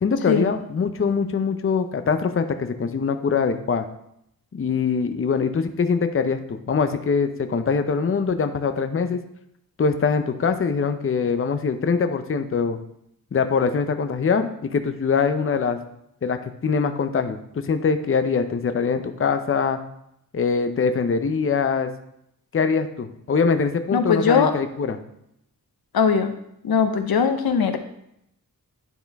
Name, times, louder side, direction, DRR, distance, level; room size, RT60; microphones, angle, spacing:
voice 1, 0.0-3.9 4.5-9.2 9.8-12.8 13.3-15.8 16.2-19.8 20.3-21.9 22.5-25.0, left 5 dB, 35° left, 8 dB, 0.6 m, -23 dB
voice 2, 23.9-24.5 25.9-26.3 26.6-27.8, left 6 dB, 85° left, 7 dB, 0.7 m, -20 dB
10.0 x 4.3 x 3.4 m, 0.77 s
wide cardioid pair, 80°, 36 cm